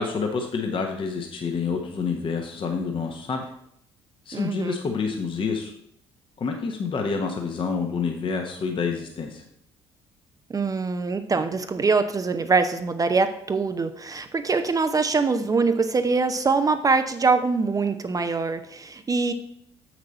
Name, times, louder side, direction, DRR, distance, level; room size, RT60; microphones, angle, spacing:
voice 1, 0.0-3.4 4.3-5.7 6.4-9.4, left 5 dB, 35° left, 3 dB, 1.1 m, -28 dB
voice 2, 4.3-4.8 10.5-19.3, right 4 dB, 25° right, 8 dB, 0.6 m, -23 dB
7.5 x 6.1 x 4.1 m, 0.71 s
figure-of-eight pair, 50°, 15 cm